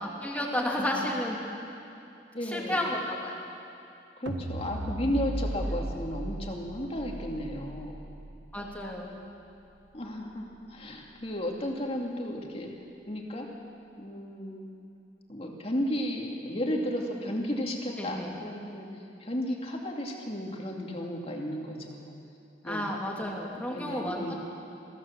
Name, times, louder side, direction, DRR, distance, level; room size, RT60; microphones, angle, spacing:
voice 1, 0.0-1.4 2.5-3.5 8.5-9.2 18.0-18.3 22.6-24.3, left 1 dB, 10° left, -2 dB, 2.7 m, -32 dB
voice 2, 0.7-1.1 2.3-2.9 4.2-8.0 9.9-12.7 13.1-13.5 14.0-14.7 15.3-22.1 22.6-23.0 23.7-24.3, equal, 35° left, 0 dB, 2.5 m, -34 dB
sound 1, 4.3-10.6, right 1 dB, 85° right, 1.5 m, -37 dB
22.5 x 15.5 x 7.5 m, 2.7 s
head